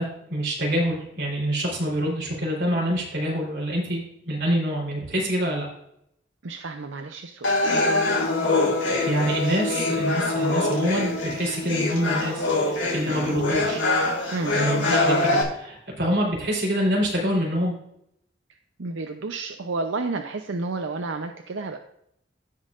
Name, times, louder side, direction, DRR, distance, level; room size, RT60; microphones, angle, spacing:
voice 1, 0.0-5.7 8.9-13.8 14.5-17.7, equal, 60° right, -3 dB, 3.6 m, -26 dB
voice 2, 6.4-7.6 14.3-14.6 18.8-21.8, right 3 dB, 85° right, 5 dB, 0.7 m, -31 dB
sound 1, 7.4-15.4, left 2 dB, 85° left, 2.1 m, -24 dB
16.0 x 5.5 x 2.5 m, 0.76 s
head